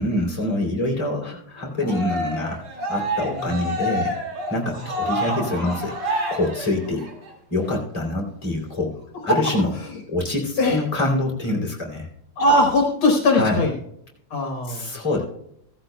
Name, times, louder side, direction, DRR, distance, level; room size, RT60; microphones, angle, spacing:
voice 1, 0.0-2.6 2.9-4.2 4.5-5.9 6.3-7.1 7.5-9.0 9.2-9.7 10.1-12.1 13.3-13.6 14.6-15.2, left 1 dB, 15° left, -1 dB, 2.7 m, -25 dB
Cheering, 1.8-7.3, equal, 85° right, 3.2 m, -28 dB
voice 2, 12.4-13.7 14.3-14.9, left 1 dB, 65° left, 2 dB, 1.9 m, -20 dB
15.5 x 14.5 x 2.3 m, 0.76 s
omnidirectional pair, 2.4 m